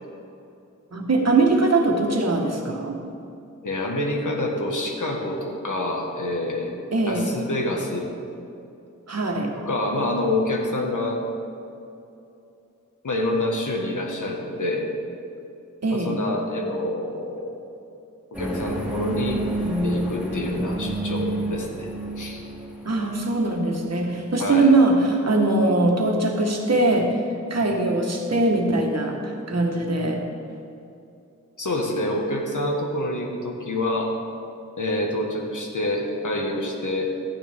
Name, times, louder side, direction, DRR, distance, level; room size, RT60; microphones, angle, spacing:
voice 1, 0.9-3.0 6.9-7.3 9.1-9.5 15.8-16.2 22.8-27.1 27.5-30.2, right 2 dB, 55° right, 1 dB, 1.5 m, -21 dB
voice 2, 3.6-6.7 7.1-8.1 9.6-11.2 13.0-14.9 15.9-17.5 18.3-19.4 19.8-21.9 22.2-22.4 24.4-24.7 31.6-34.1 34.8-37.1, left 1 dB, 70° left, 0 dB, 1.6 m, -27 dB
sound 1, 18.3-23.5, right 1 dB, 5° right, 2.7 m, -28 dB
13.0 x 9.4 x 3.6 m, 2.7 s
wide cardioid pair, 100°, 31 cm